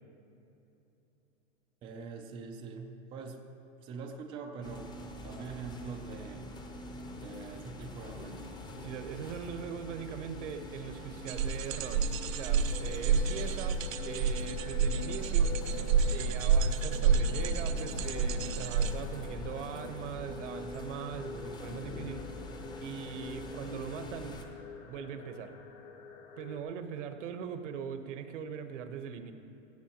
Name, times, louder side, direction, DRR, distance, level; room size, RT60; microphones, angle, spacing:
voice 1, 1.8-3.4 3.8-6.5 7.1-8.5, right 4 dB, 15° right, 3 dB, 0.4 m, -44 dB
sound 1, 4.6-24.4, left 2 dB, 10° left, 0.8 m, -43 dB
voice 2, 8.8-15.7 16.1-22.2 22.8-24.4 24.8-25.6 26.4-29.3, right 7 dB, 65° right, 8 dB, 1.2 m, -41 dB
sound 2, 11.3-18.9, right 6 dB, 85° right, 0.9 m, -29 dB
sound 3, 12.7-26.6, left 6 dB, 40° left, 1.2 m, -46 dB
17.0 x 14.5 x 3.0 m, 3.0 s
supercardioid pair, 150°, 39 cm